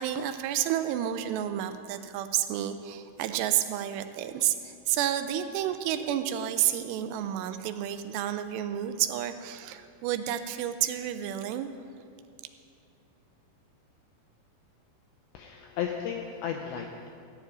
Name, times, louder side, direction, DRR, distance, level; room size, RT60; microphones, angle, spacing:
voice 1, 0.0-11.7, right 11 dB, 85° right, 10 dB, 2.6 m, -30 dB
voice 2, 15.3-17.1, left 8 dB, 85° left, 2 dB, 2.2 m, -34 dB
14.5 x 4.9 x 9.3 m, 2.4 s
omnidirectional pair, 5.0 m